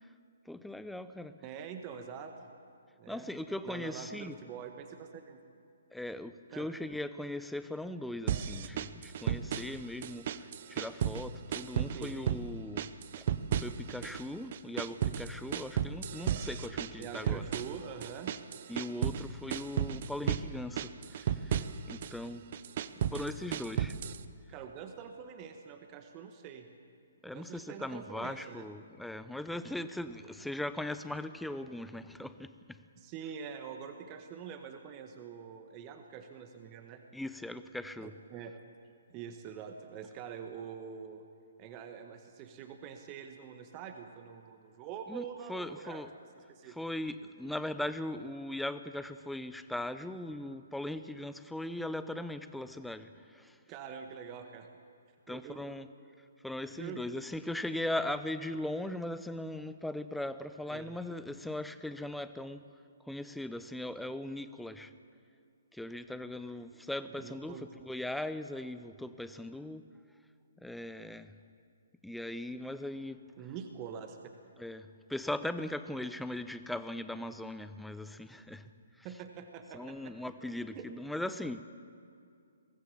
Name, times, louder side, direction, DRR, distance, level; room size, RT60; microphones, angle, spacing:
voice 1, 0.5-1.4 3.1-4.4 5.9-12.8 13.2-13.3 13.6-17.4 18.7-22.5 23.1-24.0 27.2-32.8 37.1-38.1 45.1-45.2 45.5-46.1 46.7-53.6 55.3-55.9 56.4-62.6 63.1-64.9 65.7-69.8 70.6-71.3 72.0-73.2 74.6-78.7 79.0-79.1 79.7-81.6, left 1 dB, ahead, 12 dB, 0.8 m, -39 dB
voice 2, 1.4-2.3 3.0-3.3 3.6-5.4 6.5-6.7 11.9-12.1 17.0-18.3 24.5-26.7 27.2-28.7 32.9-37.0 38.0-38.5 39.1-41.2 41.6-46.0 46.5-46.8 53.7-54.7 55.3-55.8 56.7-57.0 60.7-61.0 67.2-67.6 73.4-74.2 79.0-80.3 80.7-80.9, right 7 dB, 30° right, 6 dB, 1.5 m, -45 dB
sound 1, 8.3-9.8 10.0-11.2 11.5-12.4 12.8-14.2 14.5-19.2 19.5-20.5 20.8-22.1 22.5-24.2, right 9 dB, 45° right, 0.9 m, -33 dB
23.0 x 18.5 x 7.1 m, 2.4 s
figure-of-eight pair, 130°, 0 cm